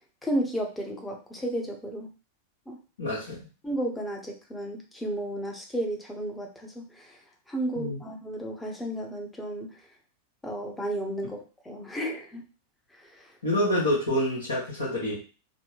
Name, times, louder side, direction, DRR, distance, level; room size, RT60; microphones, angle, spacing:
voice 1, 0.2-2.1 2.7-2.8 3.6-7.2 7.5-9.7 10.4-11.4 11.6-12.4 13.0-13.3, right 1 dB, 10° left, 1 dB, 0.7 m, -33 dB
voice 2, 3.0-3.4 7.8-8.0 13.4-15.1, left 1 dB, 75° left, -8 dB, 1.2 m, -27 dB
3.3 x 2.1 x 2.9 m, 0.34 s
figure-of-eight pair, 90°, 0 cm